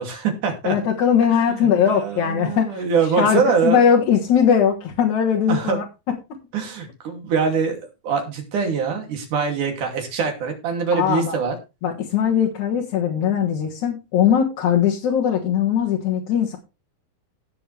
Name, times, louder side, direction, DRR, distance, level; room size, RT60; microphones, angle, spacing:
voice 1, 0.0-0.8 1.3-3.8 5.5-5.8 6.5-11.6, right 5 dB, 55° right, 3 dB, 4.0 m, -24 dB
voice 2, 0.6-2.8 3.2-5.8 10.9-11.4 11.8-16.6, left 8 dB, 60° left, -2 dB, 2.6 m, -20 dB
17.5 x 6.9 x 3.3 m, 0.27 s
omnidirectional pair, 4.3 m